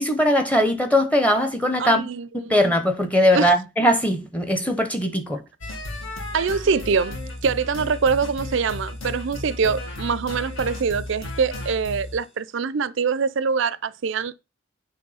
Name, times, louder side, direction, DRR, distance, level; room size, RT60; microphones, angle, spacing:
voice 1, 0.0-2.1 2.5-5.4, equal, 5° left, 0.8 m, -20 dB
voice 2, 1.8-2.6 3.3-3.5 6.3-7.2 7.4-14.3, right 5 dB, 60° right, 0.4 m, -24 dB
sound 1, 5.6-12.2, left 1 dB, 70° left, 2.0 m, -34 dB
7.8 x 3.1 x 5.6 m
head